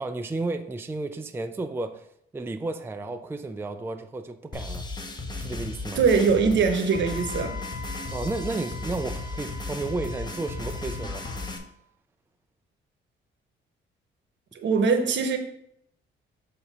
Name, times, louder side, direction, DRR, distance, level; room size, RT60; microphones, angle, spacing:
voice 1, 0.0-2.1 2.3-4.8 5.4-6.0 8.1-11.2, right 2 dB, 10° right, 0.4 m, -32 dB
sound 1, 4.5-11.6, left 3 dB, 20° left, 1.0 m, -35 dB
voice 2, 6.0-7.6 14.5-15.4, right 5 dB, 65° right, 1.1 m, -22 dB
Wind instrument woodwind instrument, 6.9-11.7, left 3 dB, 45° left, 1.0 m, -43 dB
6.8 x 2.9 x 5.4 m
cardioid pair, 90°, 20 cm